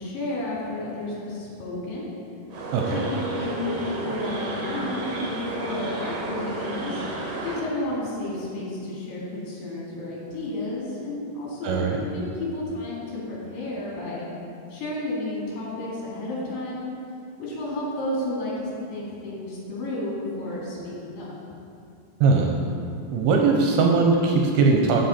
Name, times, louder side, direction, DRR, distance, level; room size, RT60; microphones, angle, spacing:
voice 1, 0.0-2.1 2.9-7.0 7.4-14.3 14.7-16.9 17.4-21.3, left 1 dB, 60° left, -6 dB, 3.8 m, -32 dB
sound 1, 2.5-7.6, right 2 dB, 60° right, 1.8 m, -32 dB
voice 2, 11.6-12.0 22.2-22.5 23.1-25.1, right 4 dB, 75° right, 1 dB, 2.4 m, -20 dB
14.0 x 5.6 x 4.3 m, 2.6 s
omnidirectional pair, 5.0 m